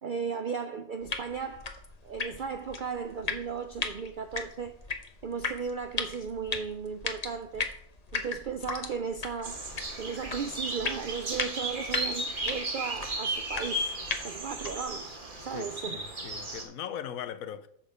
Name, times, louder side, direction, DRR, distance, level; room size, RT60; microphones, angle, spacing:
voice 1, 0.0-1.7 2.0-4.7 5.2-7.7 8.1-9.6 10.0-13.9 14.2-16.0, right 6 dB, 70° right, 0.4 m, -36 dB
sound 1, 1.0-15.0, left 4 dB, 35° left, 0.8 m, -38 dB
sound 2, 9.4-16.6, right 1 dB, 35° right, 1.5 m, -35 dB
voice 2, 15.5-17.7, left 9 dB, 80° left, 1.1 m, -39 dB
7.8 x 6.3 x 4.9 m
omnidirectional pair, 1.5 m